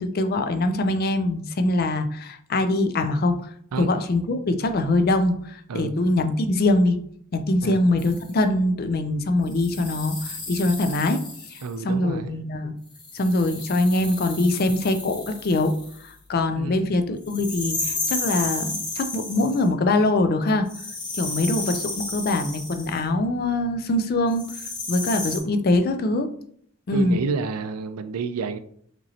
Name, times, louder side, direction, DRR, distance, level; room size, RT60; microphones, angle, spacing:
voice 1, 0.0-3.5 3.8-7.0 7.3-11.2 11.5-12.7 13.1-15.8 16.0-20.7 21.1-24.4 24.9-26.3 26.9-27.2, left 2 dB, 45° left, 0.4 m, -23 dB
sound 1, 8.0-8.3 9.5-11.7 12.9-16.1 17.3-19.7 20.7-23.0 24.3-25.4, left 3 dB, 20° left, 0.8 m, -33 dB
voice 2, 11.6-12.3 16.5-16.8 26.9-28.6, right 4 dB, 85° right, 0.4 m, -29 dB
5.1 x 3.0 x 2.8 m
head